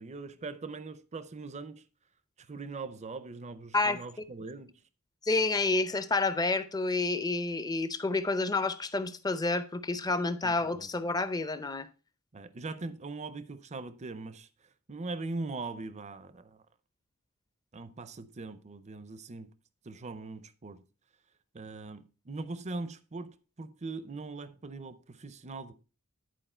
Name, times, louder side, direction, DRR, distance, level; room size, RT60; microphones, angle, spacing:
voice 1, 0.0-1.8 2.4-4.8 10.4-10.9 12.3-14.5 14.9-16.6 17.7-19.5 19.8-20.8 21.5-25.7, right 3 dB, 30° right, 0.6 m, -41 dB
voice 2, 3.7-4.3 5.2-11.9, left 3 dB, 15° left, 0.5 m, -29 dB
10.5 x 4.7 x 4.3 m
head